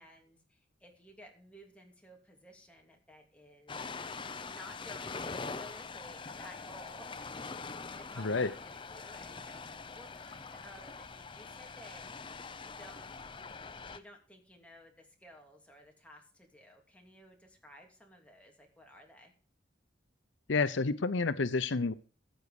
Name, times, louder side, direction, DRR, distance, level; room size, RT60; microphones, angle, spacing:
voice 1, 0.0-3.8 4.4-12.1 12.6-13.1 13.9-19.3, left 1 dB, 5° left, 1 dB, 2.7 m, -55 dB
Ocean, 3.7-14.0, left 4 dB, 25° left, 0.7 m, -43 dB
voice 2, 8.2-8.5 20.5-21.9, left 4 dB, 80° left, 13 dB, 0.7 m, -29 dB
14.5 x 8.2 x 4.9 m, 0.39 s
head